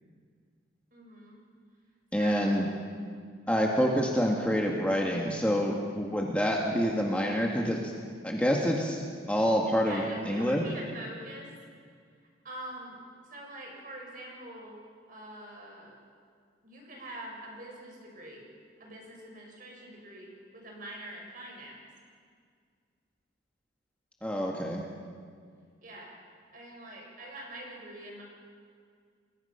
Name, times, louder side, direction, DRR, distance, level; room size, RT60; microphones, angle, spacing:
voice 1, 0.9-1.4 2.1-2.6 9.7-11.5 12.4-13.0 13.3-14.8 15.1-16.0 16.6-18.4 18.8-21.8 25.8-26.1 26.5-28.2, right 1 dB, 45° right, -1 dB, 6.4 m, -44 dB
voice 2, 2.1-2.7 3.5-7.9 8.2-9.0 9.3-10.6 24.2-24.8, equal, 5° left, -1 dB, 1.9 m, -27 dB
29.5 x 22.0 x 5.8 m, 2.1 s
head